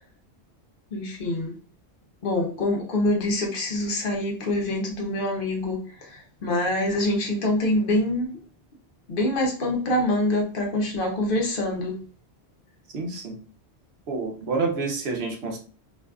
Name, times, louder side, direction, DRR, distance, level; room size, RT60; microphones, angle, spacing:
voice 1, 0.9-1.6 2.2-8.3 9.1-12.0, left 1 dB, 60° left, 0.8 m, -25 dB
voice 2, 12.9-13.4 14.1-15.6, right 4 dB, 80° right, 0.9 m, -28 dB
2.6 x 2.4 x 2.2 m
omnidirectional pair, 1.1 m